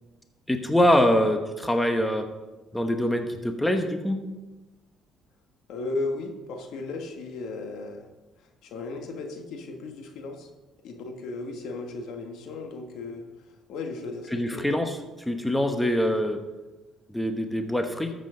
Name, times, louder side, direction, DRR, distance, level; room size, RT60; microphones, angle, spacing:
voice 1, 0.5-2.3 2.7-4.2 14.3-14.9 15.2-16.4 17.1-18.1, equal, 5° left, 5 dB, 1.0 m, -24 dB
voice 2, 5.7-8.1 8.4-10.5 10.8-13.3 13.7-14.8, left 3 dB, 75° left, 4 dB, 1.5 m, -35 dB
13.5 x 7.5 x 3.8 m, 1.1 s
cardioid pair, 105°, 0 cm